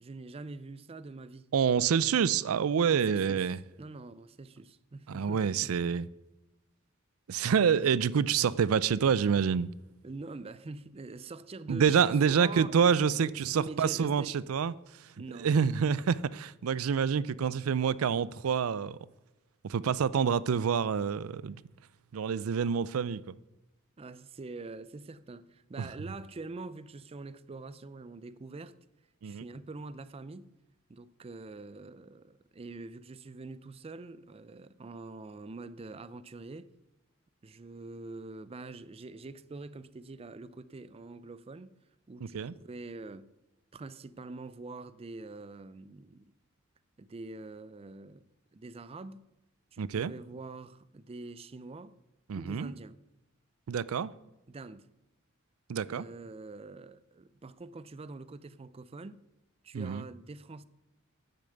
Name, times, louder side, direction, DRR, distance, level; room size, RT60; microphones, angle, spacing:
voice 1, 0.0-1.5 2.9-3.5 3.8-5.7 10.0-14.4 15.2-15.5 24.0-28.8 29.2-30.5 30.9-36.7 37.4-41.7 42.1-43.3 43.7-46.2 47.0-48.3 48.5-49.3 49.7-52.0 52.3-53.0 54.5-54.9 55.9-59.2 59.6-60.6, right 3 dB, 30° right, 0.4 m, -45 dB
voice 2, 1.5-3.6 5.1-6.1 7.3-9.7 11.7-15.1 15.4-19.0 19.6-21.6 22.1-23.4 25.8-25.9 29.2-29.4 42.3-42.5 49.8-50.1 52.3-52.7 53.7-54.1 55.7-56.1 59.7-60.0, right 7 dB, 90° right, 0.4 m, -27 dB
10.0 x 6.7 x 7.9 m
head